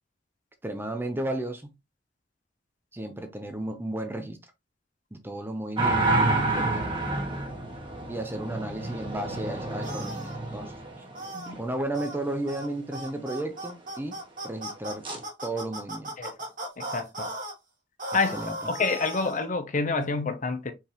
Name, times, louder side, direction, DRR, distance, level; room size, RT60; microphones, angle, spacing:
voice 1, 0.6-1.7 2.9-4.5 5.1-6.1 6.5-6.9 8.1-11.0 11.5-14.2 14.4-15.0 15.4-16.2 18.1-18.6, right 1 dB, 10° right, 0.7 m, -33 dB
sound 1, 5.8-11.6 15.0-15.2, right 2 dB, 25° right, 1.3 m, -29 dB
sound 2, 9.8-10.4 11.1-11.5 11.9-12.2 12.5-12.7 12.9-17.5 18.0-19.5, right 1 dB, 45° right, 1.6 m, -37 dB
voice 2, 16.8-17.3 18.1-18.4 18.7-20.7, left 4 dB, 45° left, 0.7 m, -28 dB
4.5 x 3.6 x 3.0 m
head